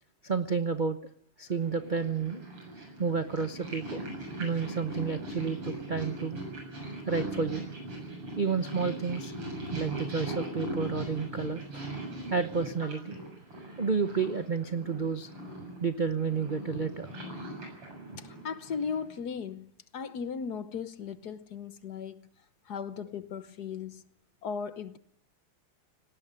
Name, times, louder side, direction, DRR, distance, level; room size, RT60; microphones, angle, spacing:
voice 1, 0.2-1.0 1.4-2.4 3.0-4.0 4.4-6.4 7.1-7.7 8.4-9.3 9.7-11.9 12.3-13.2 13.8-15.3 15.8-17.1, right 5 dB, 55° right, 0.5 m, -30 dB
Purr, 1.5-19.2, right 1 dB, 90° right, 8.1 m, -40 dB
voice 2, 18.2-22.3 22.6-24.0 24.4-25.0, left 6 dB, 55° left, 1.4 m, -37 dB
18.5 x 18.0 x 9.9 m
omnidirectional pair, 2.4 m